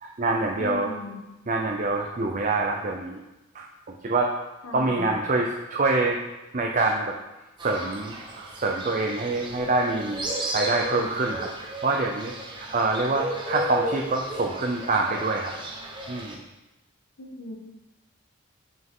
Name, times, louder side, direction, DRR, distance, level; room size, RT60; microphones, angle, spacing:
voice 1, 0.0-1.0 1.5-3.2 3.5-4.3 4.7-6.2 6.5-7.1 7.6-11.5 11.8-15.5 16.1-16.4, right 3 dB, 40° right, 1 dB, 0.6 m, -26 dB
voice 2, 0.5-1.3 4.6-5.1 17.2-17.6, left 3 dB, 85° left, 0 dB, 1.1 m, -37 dB
Fowl, 7.6-16.3, right 1 dB, 20° right, 1.0 m, -34 dB
7.4 x 6.0 x 3.7 m, 1.0 s
head